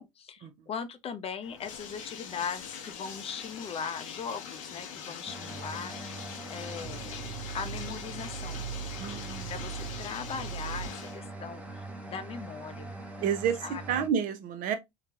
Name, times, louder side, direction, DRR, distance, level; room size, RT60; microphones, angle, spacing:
voice 1, 0.0-6.2 6.5-7.1 7.5-8.6 9.5-13.0 13.6-13.8, left 6 dB, 35° left, 0.6 m, -39 dB
Bathtub (filling or washing), 1.4-11.2, left 7 dB, 80° left, 0.9 m, -43 dB
sound 1, 5.3-14.1, right 5 dB, 10° right, 0.9 m, -40 dB
voice 2, 9.0-9.5 13.2-14.7, right 8 dB, 50° right, 0.7 m, -30 dB
3.8 x 2.3 x 2.8 m
hypercardioid pair, 75°, 17 cm